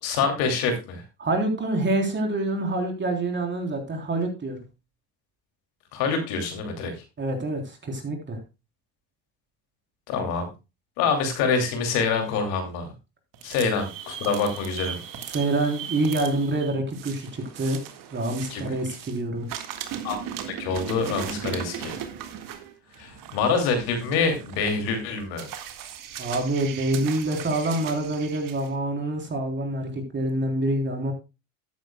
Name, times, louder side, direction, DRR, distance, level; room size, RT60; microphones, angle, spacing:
voice 1, 0.0-1.0 5.9-6.9 10.1-10.5 11.0-12.9 13.4-15.0 18.5-18.6 20.0-20.2 20.5-22.0 23.0-25.5, left 5 dB, 80° left, 5 dB, 2.8 m, -26 dB
voice 2, 1.2-4.6 7.2-8.4 15.3-17.8 18.1-19.5 26.2-31.1, right 2 dB, 30° right, 3 dB, 3.6 m, -26 dB
sound 1, 13.3-19.2 19.5-28.7, right 9 dB, 60° right, 1.8 m, -38 dB
13.0 x 9.7 x 2.3 m, 0.27 s
supercardioid pair, 90°, 37 cm